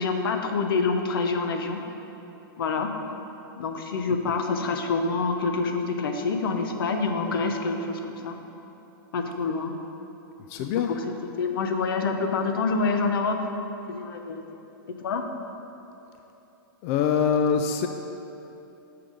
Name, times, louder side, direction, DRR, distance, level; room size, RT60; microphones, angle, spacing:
voice 1, 0.0-1.8 2.6-2.9 3.6-8.4 9.1-9.7 10.5-10.6 10.9-11.0 11.4-13.5 13.9-14.4 15.0-15.2, left 4 dB, 80° left, 5 dB, 0.8 m, -26 dB
voice 2, 10.5-10.9 16.8-17.9, left 7 dB, 40° left, 6 dB, 0.3 m, -23 dB
6.7 x 5.8 x 5.1 m, 3.0 s
supercardioid pair, 150°, 12 cm